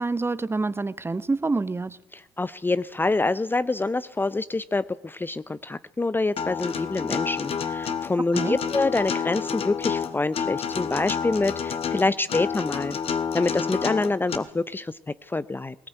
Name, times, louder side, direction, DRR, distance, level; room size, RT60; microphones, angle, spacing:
voice 1, 0.0-2.0 8.3-8.6, right 3 dB, 20° right, 1.0 m, -27 dB
voice 2, 2.1-13.0 13.3-15.7, left 3 dB, 15° left, 0.7 m, -26 dB
Acoustic guitar, 6.4-14.4, left 7 dB, 50° left, 2.0 m, -29 dB
19.5 x 18.5 x 9.2 m
hypercardioid pair, 60°, 13 cm